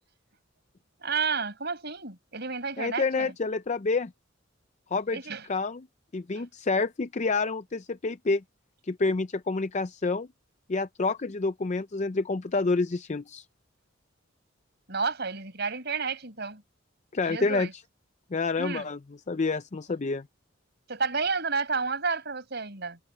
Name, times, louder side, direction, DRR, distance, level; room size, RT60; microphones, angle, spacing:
voice 1, 1.0-3.3 5.1-5.4 6.4-6.5 14.9-16.6 17.3-17.7 18.6-18.9 20.9-23.0, right 4 dB, 55° right, 5.6 m, -31 dB
voice 2, 2.8-4.1 4.9-5.2 5.5-5.9 6.1-8.4 8.8-10.3 10.7-13.5 17.1-17.7 18.3-19.0 19.3-20.2, left 3 dB, 35° left, 0.5 m, -28 dB
head